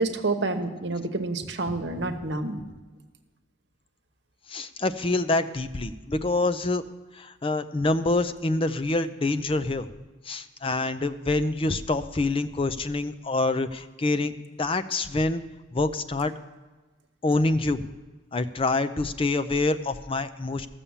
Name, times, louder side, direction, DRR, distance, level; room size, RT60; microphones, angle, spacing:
voice 1, 0.0-2.6, right 3 dB, 65° right, 6 dB, 1.0 m, -28 dB
voice 2, 1.7-2.2 4.5-6.8 7.1-9.9 10.2-14.3 14.6-15.4 15.7-16.3 17.2-17.9 18.3-20.7, left 2 dB, 30° left, 11 dB, 0.5 m, -26 dB
14.0 x 6.9 x 7.2 m, 1.2 s
head